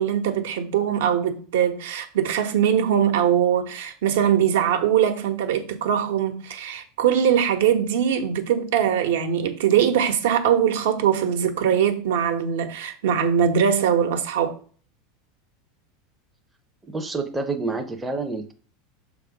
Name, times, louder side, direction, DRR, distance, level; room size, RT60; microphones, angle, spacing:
voice 1, 0.0-14.6, right 9 dB, 80° right, 1.1 m, -21 dB
voice 2, 16.8-18.5, right 3 dB, 5° right, 0.5 m, -28 dB
6.3 x 3.4 x 5.1 m
supercardioid pair, 170°, 0 cm